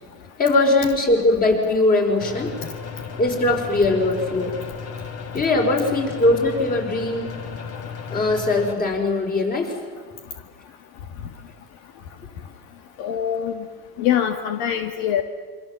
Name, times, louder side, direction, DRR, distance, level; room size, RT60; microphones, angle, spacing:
voice 1, 0.4-2.5 3.2-4.6 5.3-7.3 8.1-9.8, left 2 dB, 25° left, 2 dB, 5.5 m, -20 dB
sound 1, 2.2-8.7, left 6 dB, 45° left, 3.5 m, -35 dB
voice 2, 13.0-13.7 14.0-15.2, left 9 dB, 70° left, 6 dB, 1.8 m, -23 dB
27.5 x 25.0 x 7.5 m, 1.5 s
supercardioid pair, 135°, 34 cm